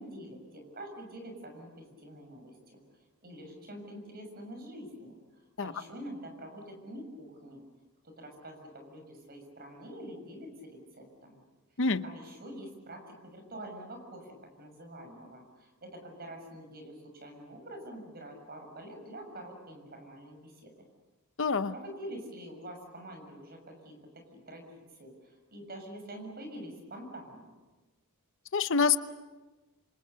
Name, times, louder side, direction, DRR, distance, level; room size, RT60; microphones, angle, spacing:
voice 1, 0.0-2.8 3.2-5.2 5.6-7.6 8.0-11.4 12.0-20.7 21.7-27.5, right 1 dB, 45° right, 4 dB, 6.7 m, -46 dB
voice 2, 21.4-21.7 28.5-29.0, left 5 dB, 60° left, 11 dB, 0.9 m, -26 dB
27.0 x 27.0 x 6.9 m, 1.2 s
head